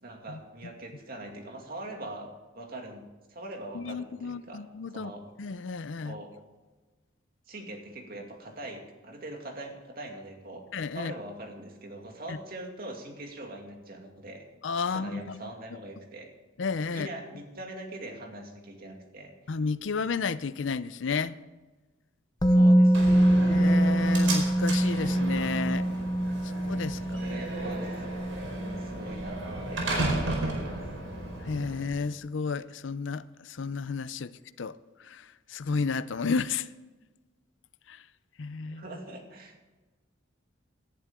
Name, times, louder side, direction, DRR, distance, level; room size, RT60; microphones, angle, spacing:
voice 1, 0.0-4.6 4.9-5.3 6.0-6.3 7.5-10.6 10.9-14.4 14.8-16.3 16.9-19.3 22.5-23.3 27.1-27.9 28.3-29.4 29.7-30.8 38.7-39.6, right 1 dB, 50° right, 2.4 m, -42 dB
voice 2, 3.7-5.1 5.4-6.2 10.7-11.1 12.3-12.4 14.6-15.5 16.6-17.1 19.5-21.3 23.5-25.8 26.4-27.2 31.4-34.3 34.6-34.8 35.0-36.7 37.9-38.0 38.4-38.8, left 5 dB, 70° left, 0.5 m, -32 dB
Musical instrument, 22.4-30.3 30.6-30.8, right 1 dB, 20° left, 0.7 m, -25 dB
Slam, 22.9-31.9, right 2 dB, 90° right, 4.6 m, -34 dB
18.5 x 11.0 x 3.7 m
head